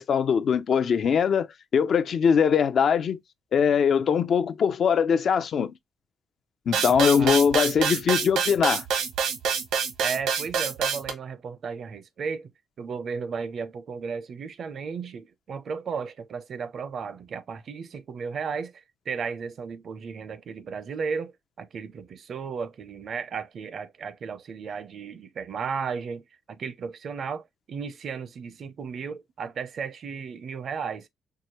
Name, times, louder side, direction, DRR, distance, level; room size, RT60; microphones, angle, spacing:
voice 1, 0.0-1.5 1.7-3.2 3.5-5.7 6.7-8.8, left 7 dB, 60° left, 0.5 m, -22 dB
sound 1, 6.7-11.1, right 7 dB, 85° right, 1.0 m, -26 dB
voice 2, 10.0-12.5 12.8-31.1, right 5 dB, 55° right, 0.6 m, -34 dB
4.7 x 2.3 x 3.0 m
cardioid pair, 90°, 0 cm